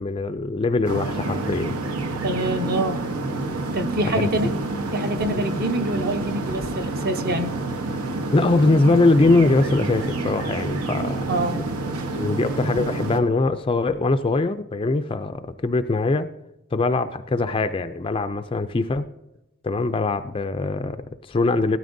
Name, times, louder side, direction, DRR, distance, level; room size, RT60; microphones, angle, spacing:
voice 1, 0.0-1.8 4.1-4.5 5.4-5.5 8.3-11.2 12.2-16.3 16.7-19.1 19.6-21.8, left 3 dB, 25° left, 10 dB, 0.3 m, -22 dB
sound 1, 0.8-13.2, right 2 dB, 85° right, 1.0 m, -28 dB
voice 2, 2.2-3.0 3.7-4.5 4.9-7.5 11.3-11.6, right 1 dB, 40° right, 7 dB, 0.7 m, -25 dB
16.5 x 12.5 x 2.6 m, 0.95 s
head